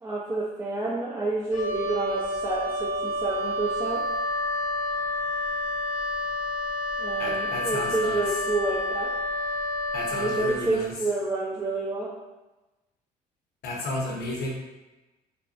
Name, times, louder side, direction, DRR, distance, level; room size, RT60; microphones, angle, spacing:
voice 1, 0.0-4.0 7.0-9.1 10.1-12.1, right 3 dB, 20° right, -8 dB, 0.4 m, -29 dB
Wind instrument woodwind instrument, 1.5-10.6, left 1 dB, 50° left, 0.4 m, -29 dB
voice 2, 7.2-8.2 9.9-10.9 13.6-14.5, left 2 dB, 70° left, -3 dB, 0.7 m, -32 dB
2.5 x 2.0 x 2.4 m, 1.1 s
cardioid pair, 110°, 17 cm